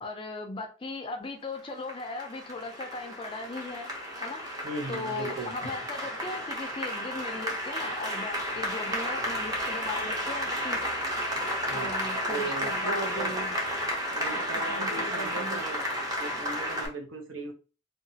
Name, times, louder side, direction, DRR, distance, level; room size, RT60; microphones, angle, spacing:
voice 1, 0.0-3.9 4.2-4.5 4.9-10.8 11.7-13.5 14.3-15.6, left 3 dB, 25° left, 4 dB, 0.4 m, -38 dB
Applause, 1.5-16.9, equal, 20° right, 0.7 m, -32 dB
voice 2, 4.6-5.7 11.7-11.9 12.3-13.4 14.1-15.8 16.2-17.5, right 3 dB, 85° right, 4 dB, 0.7 m, -37 dB
2.8 x 2.3 x 2.7 m, 0.34 s
head